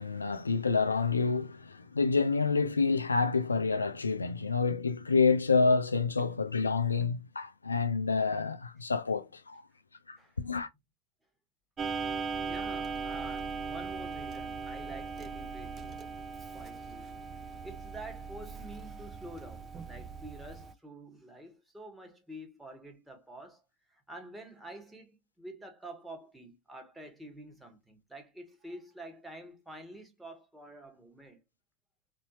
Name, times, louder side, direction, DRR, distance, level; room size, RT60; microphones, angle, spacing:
voice 1, 0.0-9.6 10.1-10.7, left 4 dB, 75° left, 0.4 m, -28 dB
Clock, 11.8-20.7, right 5 dB, 25° right, 0.4 m, -39 dB
voice 2, 12.4-17.2 17.6-23.6 24.1-31.4, right 1 dB, 5° right, 1.2 m, -48 dB
4.0 x 2.7 x 2.8 m
figure-of-eight pair, 90°, 0 cm